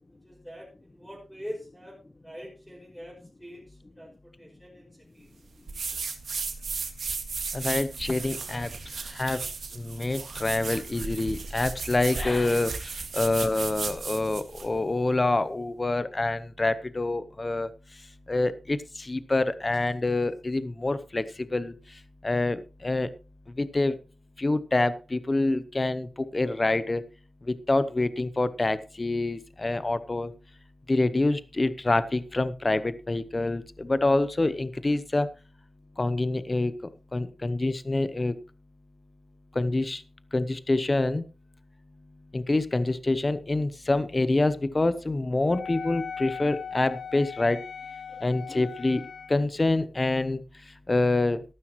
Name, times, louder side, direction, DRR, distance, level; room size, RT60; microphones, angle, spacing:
voice 1, 0.1-5.3, equal, 5° left, -4 dB, 5.6 m, -44 dB
sound 1, 5.7-14.7, right 4 dB, 75° right, 1.9 m, -35 dB
voice 2, 7.5-8.8 9.0-18.0 18.3-23.1 23.6-24.0 24.4-27.0 27.4-30.3 30.9-35.3 36.0-38.3 39.5-40.0 40.3-41.2 42.3-47.6 48.2-51.4, left 2 dB, 25° left, 14 dB, 0.8 m, -27 dB
Wind instrument woodwind instrument, 45.5-49.4, left 7 dB, 80° left, 0.6 m, -38 dB
14.0 x 12.0 x 3.0 m, 0.31 s
wide cardioid pair, 135°, 0 cm